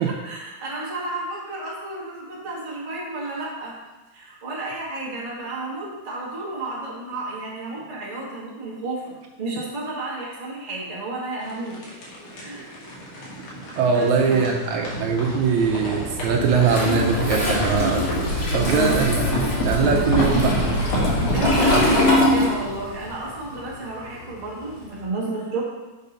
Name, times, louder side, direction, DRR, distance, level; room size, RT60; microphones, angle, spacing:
voice 1, 0.2-3.7 4.1-11.8 12.3-12.7 13.8-14.5 18.6-19.0 21.3-25.6, right 2 dB, 15° right, -5 dB, 1.3 m, -32 dB
sound 1, 11.4-23.5, equal, 85° left, 3.1 m, -27 dB
voice 2, 13.8-18.1 18.5-19.2 19.6-20.6, right 5 dB, 75° right, 2 dB, 2.0 m, -21 dB
Toilet flush, 16.6-23.0 23.3-24.9, left 1 dB, 65° left, 0.6 m, -24 dB
6.5 x 5.3 x 5.3 m, 1.1 s
omnidirectional pair, 3.5 m